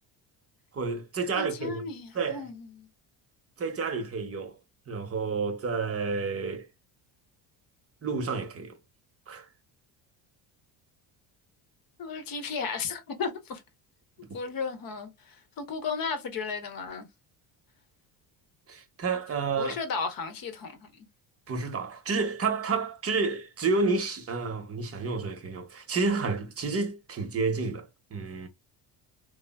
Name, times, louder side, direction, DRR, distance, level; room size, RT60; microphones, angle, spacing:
voice 1, 0.7-1.8 2.1-2.4 3.6-4.6 4.9-6.7 8.0-8.7 9.3-9.5 18.7-19.8 21.5-28.5, right 4 dB, 30° right, 0.8 m, -30 dB
voice 2, 1.4-2.9 12.0-13.6 14.3-17.1 19.6-21.1, left 5 dB, 50° left, 0.8 m, -34 dB
3.4 x 2.0 x 2.2 m
cardioid pair, 95°, 46 cm